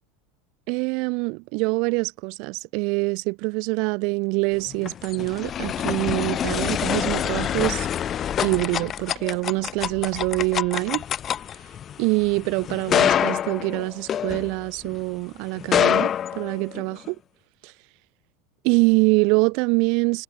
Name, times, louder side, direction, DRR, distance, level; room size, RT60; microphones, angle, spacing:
voice 1, 0.7-7.9 8.4-11.0 12.0-17.2 17.6-17.7 18.6-20.2, right 31 dB, 55° right, 0.4 m, -24 dB
sound 1, 4.6-15.0 15.6-17.1, left 9 dB, 35° left, 1.2 m, -26 dB
hypercardioid pair, 80°, 0 cm